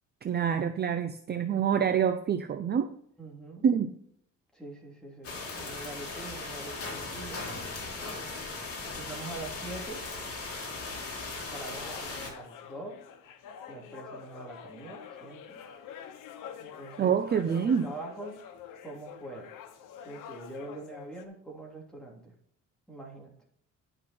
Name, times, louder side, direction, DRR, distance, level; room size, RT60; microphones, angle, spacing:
voice 1, 0.2-2.9 3.6-4.0 17.0-17.9, right 7 dB, 30° right, 9 dB, 0.6 m, -26 dB
voice 2, 3.2-3.6 4.5-7.4 8.8-10.0 11.5-13.0 13.7-15.6 16.6-18.4 18.8-19.5 20.0-22.3 22.9-23.3, right 2 dB, ahead, -2 dB, 3.2 m, -44 dB
sound 1, 5.2-12.3, left 3 dB, 45° left, 3.5 m, -38 dB
sound 2, 11.6-21.2, left 8 dB, 85° left, 1.3 m, -47 dB
11.0 x 5.9 x 4.4 m, 0.69 s
cardioid pair, 135°, 31 cm